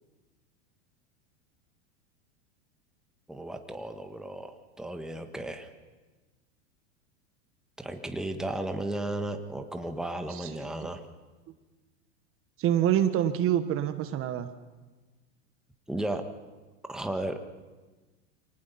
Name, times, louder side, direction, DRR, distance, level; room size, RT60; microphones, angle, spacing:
voice 1, 3.3-4.5 4.8-5.7 7.8-11.0 15.9-16.2 16.9-17.4, right 1 dB, ahead, 5 dB, 1.5 m, -34 dB
voice 2, 12.6-14.5, right 10 dB, 35° right, 10 dB, 1.2 m, -26 dB
25.0 x 19.0 x 5.6 m, 1.3 s
hypercardioid pair, 115°, 36 cm